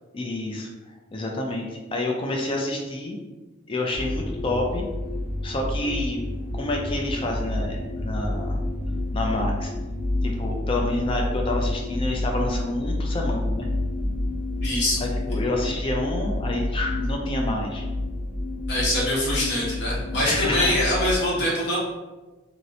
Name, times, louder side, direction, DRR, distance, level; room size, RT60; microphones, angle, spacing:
voice 1, 0.1-0.7 1.1-3.2 3.7-4.8 5.4-6.2 6.5-8.6 9.1-9.7 10.2-13.7 15.0-17.8 20.1-20.8 21.3-21.4, left 1 dB, 25° left, 1 dB, 0.4 m, -28 dB
sound 1, 3.9-21.2, left 1 dB, 75° right, 0.6 m, -29 dB
voice 2, 14.6-15.0 18.7-21.8, left 1 dB, 55° left, -6 dB, 0.9 m, -24 dB
2.8 x 2.0 x 2.6 m, 1.2 s
head